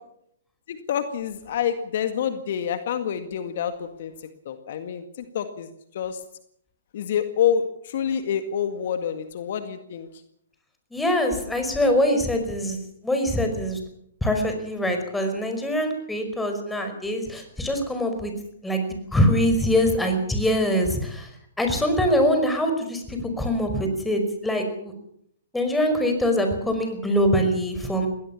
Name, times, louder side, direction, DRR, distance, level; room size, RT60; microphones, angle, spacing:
voice 1, 0.7-4.1 4.5-5.0 5.3-5.7 6.0-6.2 6.9-10.1, left 8 dB, 55° left, 9 dB, 1.9 m, -27 dB
voice 2, 10.9-12.8 13.0-13.8 14.2-18.3 18.6-21.3 21.6-24.9 25.5-28.1, equal, 5° left, 5 dB, 5.3 m, -23 dB
21.5 x 17.5 x 7.2 m, 0.71 s
hypercardioid pair, 130°, 0 cm